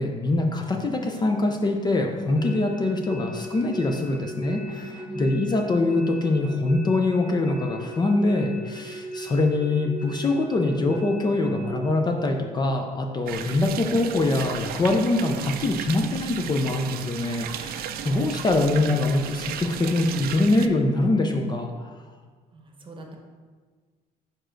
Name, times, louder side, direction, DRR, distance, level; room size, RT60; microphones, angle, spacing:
voice 1, 0.0-21.9, left 2 dB, 25° left, 3 dB, 0.5 m, -24 dB
sound 1, 2.4-11.8, right 1 dB, 5° right, 0.9 m, -37 dB
voice 2, 5.0-5.7 22.5-23.2, equal, 30° right, 2 dB, 1.0 m, -41 dB
sound 2, 13.3-20.7, right 9 dB, 65° right, 0.4 m, -35 dB
5.0 x 4.5 x 4.5 m, 1.5 s
cardioid pair, 110°, 17 cm